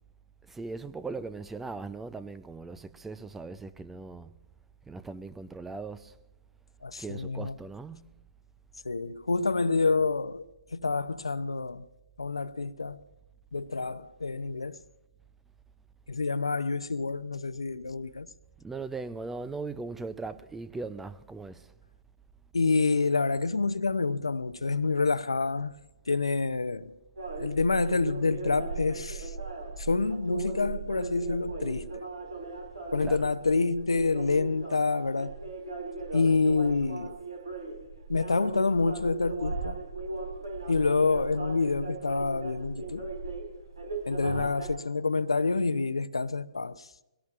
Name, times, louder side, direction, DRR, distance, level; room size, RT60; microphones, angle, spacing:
voice 1, 0.5-4.4 4.9-6.1 7.0-8.1 18.6-21.7 33.0-33.2 44.2-44.5, right 3 dB, 5° right, 0.5 m, -39 dB
voice 2, 6.8-7.6 8.8-10.4 10.7-11.9 12.2-13.0 13.5-14.8 16.1-18.3 22.5-25.7 26.1-26.9 27.4-29.3 29.8-32.0 32.9-35.3 36.1-37.2 38.1-39.8 40.7-43.0 44.1-46.9, left 3 dB, 80° left, 0.7 m, -27 dB
sound 1, 27.2-44.7, right 3 dB, 75° right, 4.5 m, -38 dB
23.5 x 17.5 x 2.5 m
figure-of-eight pair, 130°, 3 cm